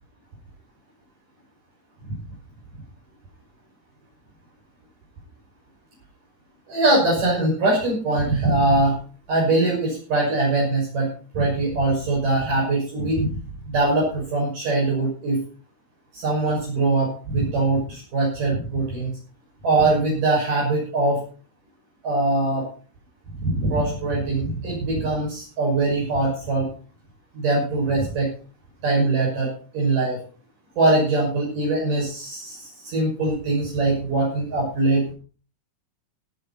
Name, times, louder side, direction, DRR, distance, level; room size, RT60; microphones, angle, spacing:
voice 1, 6.7-9.0 9.3-11.1 11.3-13.3 13.7-15.4 16.1-19.1 19.6-21.2 22.0-22.7 23.4-26.7 27.4-28.3 28.8-29.5 29.7-30.2 30.8-32.6 32.9-35.0, right 2 dB, 55° right, -3 dB, 7.7 m, -22 dB
18.5 x 11.0 x 4.3 m, 0.39 s
omnidirectional pair, 4.5 m